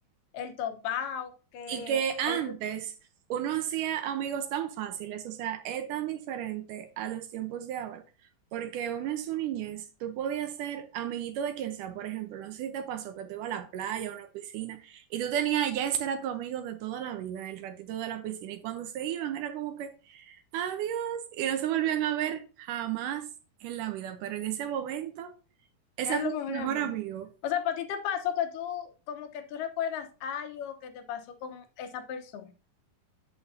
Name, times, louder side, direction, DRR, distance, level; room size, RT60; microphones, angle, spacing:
voice 1, 0.3-2.5 26.1-26.9 27.4-32.5, left 9 dB, 75° left, 2.5 m, -34 dB
voice 2, 1.7-2.9 3.3-8.0 8.5-23.3 23.6-25.3 26.0-27.3, right 10 dB, 75° right, 2.1 m, -33 dB
8.7 x 8.5 x 2.7 m
omnidirectional pair, 4.1 m